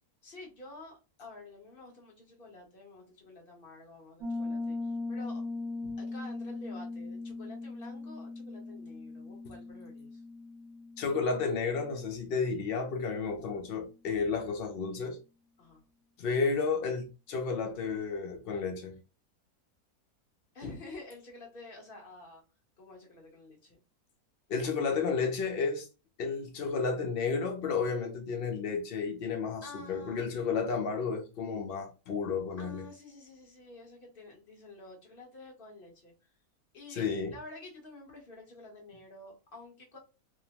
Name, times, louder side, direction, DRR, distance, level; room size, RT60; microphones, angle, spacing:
voice 1, 0.2-5.4 6.0-10.2 15.6-15.8 20.5-22.4 22.8-23.8 29.6-30.2 32.6-36.1 36.7-37.0 37.3-40.0, left 2 dB, 40° left, 1.1 m, -49 dB
Piano, 4.2-12.7, left 3 dB, 70° right, 1.0 m, -40 dB
voice 2, 11.0-15.2 16.2-19.0 24.5-25.9 26.2-32.9 36.9-37.4, left 5 dB, 75° left, 0.5 m, -32 dB
2.9 x 2.0 x 2.8 m
omnidirectional pair, 1.6 m